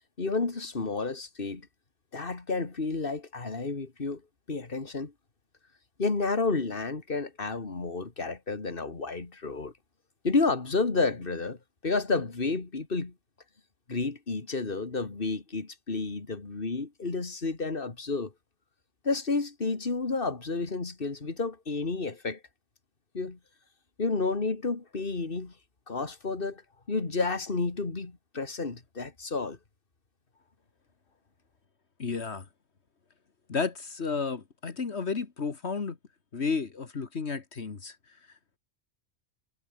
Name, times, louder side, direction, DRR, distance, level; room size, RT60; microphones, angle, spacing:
voice 1, 0.2-1.7 2.1-4.2 4.5-5.1 6.0-9.7 10.2-13.1 13.9-18.3 19.0-22.4 23.1-23.4 24.0-25.5 25.9-26.6 26.9-29.6, left 3 dB, 55° left, 2.6 m, -31 dB
voice 2, 32.0-32.5 33.5-36.0 36.3-38.0, left 5 dB, 75° left, 2.1 m, -32 dB
omnidirectional pair, 1.1 m